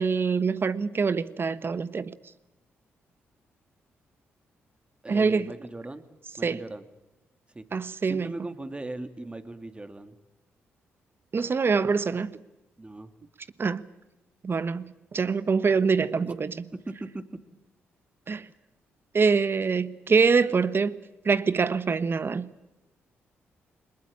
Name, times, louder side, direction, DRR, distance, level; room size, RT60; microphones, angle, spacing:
voice 1, 0.0-2.1 5.1-5.5 6.4-6.6 7.7-8.3 11.3-12.3 13.6-13.9 14.4-16.7 18.3-18.5 19.1-21.0 21.2-22.5, right 5 dB, 45° right, 1.2 m, -25 dB
voice 2, 5.0-6.0 6.4-6.8 7.5-7.7 8.1-10.2 12.8-13.1 16.3-16.4 16.7-17.4, right 2 dB, 20° right, 2.6 m, -39 dB
22.0 x 20.5 x 8.8 m
supercardioid pair, 50°, 5 cm